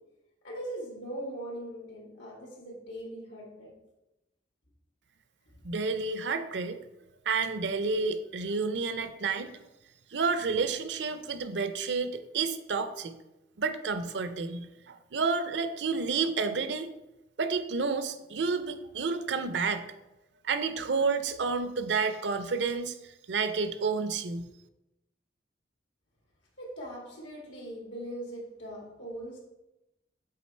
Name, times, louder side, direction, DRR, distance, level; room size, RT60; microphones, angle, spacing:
voice 1, 0.4-3.7 26.6-29.4, right 1 dB, 85° left, -2 dB, 2.1 m, -40 dB
voice 2, 5.6-6.8 7.3-9.5 10.1-13.1 13.6-16.9 17.4-19.9 20.4-23.0 23.3-24.5, right 4 dB, 75° right, 10 dB, 0.6 m, -30 dB
7.6 x 3.9 x 4.3 m, 0.95 s
head